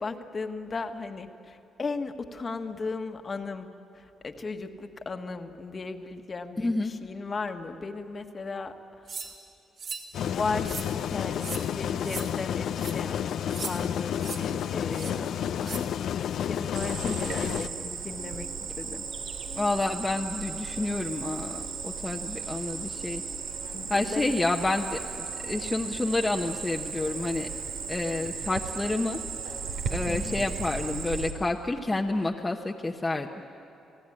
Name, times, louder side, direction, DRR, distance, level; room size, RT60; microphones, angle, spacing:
voice 1, 0.0-3.7 3.9-9.3 10.2-15.9 16.4-19.1 23.7-24.3 25.2-25.3 30.1-30.4, left 4 dB, 35° left, 6 dB, 1.6 m, -36 dB
voice 2, 6.6-6.9 17.0-17.5 19.6-23.2 23.9-25.0 25.4-27.5 27.9-29.2 29.9-33.3, left 2 dB, 20° left, 1 dB, 1.2 m, -29 dB
sound 1, 9.1-9.3 9.8-10.1 10.6-10.9 11.4-11.6 12.0-12.2 12.8-12.9 13.5-13.7 14.2-14.4 14.9-15.1 15.6-15.8, right 5 dB, 60° right, 3.6 m, -37 dB
sound 2, 10.1-17.7, left 9 dB, 70° left, 0.7 m, -30 dB
Cricket, 16.7-31.3, right 5 dB, 80° right, 3.1 m, -36 dB
29.5 x 17.0 x 10.0 m, 2.9 s
cardioid pair, 90°, 0 cm